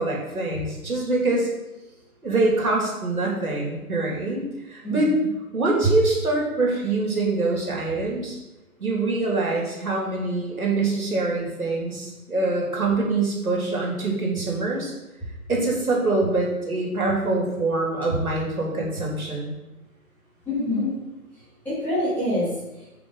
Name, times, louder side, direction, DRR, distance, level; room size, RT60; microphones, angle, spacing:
voice 1, 0.0-1.5 2.2-5.1 5.5-8.4 8.8-14.9 15.5-19.5, right 2 dB, 70° right, -2 dB, 2.8 m, -24 dB
voice 2, 4.8-5.3 5.8-5.9 18.1-18.2 20.5-20.9 21.3-22.9, equal, 5° left, -12 dB, 2.1 m, -26 dB
7.8 x 5.9 x 4.0 m, 1.0 s
figure-of-eight pair, 150°, 44 cm